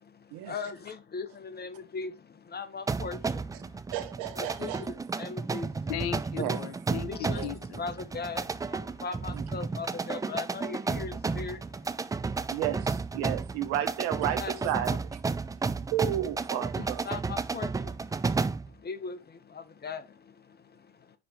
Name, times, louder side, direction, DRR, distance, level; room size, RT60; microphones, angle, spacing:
voice 1, 0.0-3.8 4.4-5.9 7.1-7.4 7.8-12.6 14.4-14.5 16.7-21.2, left 5 dB, 25° left, 1.2 m, -40 dB
sound 1, 2.9-18.7, right 4 dB, 10° right, 0.4 m, -32 dB
voice 2, 3.9-4.9 6.4-6.6 7.4-7.5 9.3-9.4 12.5-15.1 15.9-17.0, right 11 dB, 70° right, 1.3 m, -32 dB
voice 3, 5.9-7.8, left 12 dB, 70° left, 1.0 m, -37 dB
9.5 x 3.4 x 3.0 m
hypercardioid pair, 80°, 36 cm